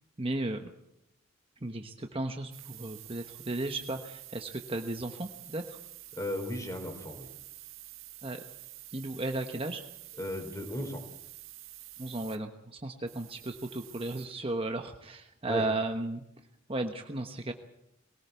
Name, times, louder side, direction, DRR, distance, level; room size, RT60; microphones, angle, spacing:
voice 1, 0.2-0.6 1.6-5.8 8.2-8.4 8.9-9.8 12.0-16.2 16.7-17.5, right 2 dB, 25° right, 5 dB, 1.1 m, -35 dB
sound 1, 2.5-12.4 13.1-14.3, right 15 dB, 70° right, 2.1 m, -49 dB
voice 2, 6.1-7.3 10.2-11.0 15.5-15.6, left 1 dB, 15° left, 5 dB, 4.1 m, -35 dB
22.5 x 18.0 x 8.2 m, 0.81 s
head